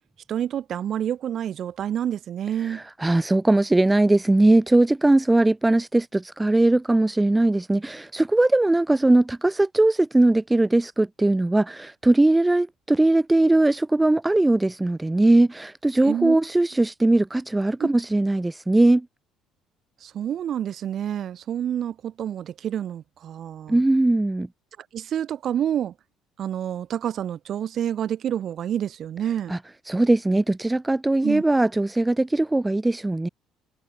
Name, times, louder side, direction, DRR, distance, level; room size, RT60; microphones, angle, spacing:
voice 1, 0.3-2.8 16.0-16.4 17.8-17.9 20.0-23.8 24.9-25.9 26.4-29.5 31.2-31.4, right 10 dB, 50° right, 2.0 m, -28 dB
voice 2, 2.7-19.1 23.7-24.5 29.5-29.6 29.9-33.3, right 2 dB, 10° right, 1.0 m, -20 dB
cardioid pair, 125°, 0 cm